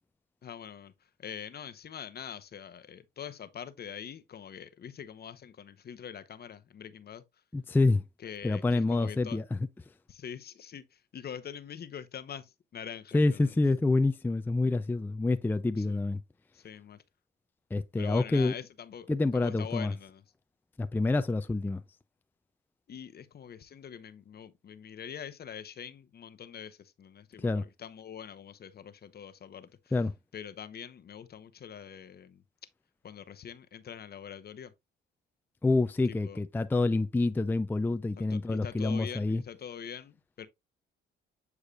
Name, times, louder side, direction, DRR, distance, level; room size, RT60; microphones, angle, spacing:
voice 1, 0.4-0.9 1.2-7.2 8.2-9.4 10.1-13.5 15.8-16.0 16.5-17.0 18.0-20.2 22.9-29.9 30.3-32.4 33.0-34.7 36.0-36.4 38.2-40.5, left 8 dB, 50° left, 0.9 m, -44 dB
voice 2, 7.5-8.0 8.4-9.6 13.1-16.2 17.7-18.5 19.1-19.9 20.8-21.8 27.4-27.6 29.9-30.1 35.6-39.4, left 2 dB, 10° left, 0.4 m, -27 dB
8.3 x 4.7 x 2.4 m
cardioid pair, 80°, 21 cm